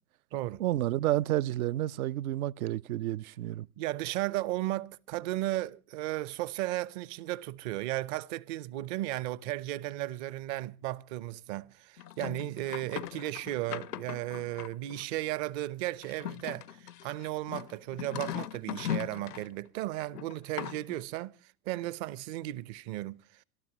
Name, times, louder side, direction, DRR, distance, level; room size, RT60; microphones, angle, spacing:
voice 1, 0.6-3.7, right 14 dB, 65° right, 0.6 m, -30 dB
voice 2, 3.8-23.4, right 16 dB, 45° right, 0.9 m, -35 dB
sound 1, 12.0-15.0 16.0-19.5 20.1-21.0, left 12 dB, 85° left, 0.6 m, -39 dB
27.0 x 12.5 x 3.0 m
hypercardioid pair, 100°, 46 cm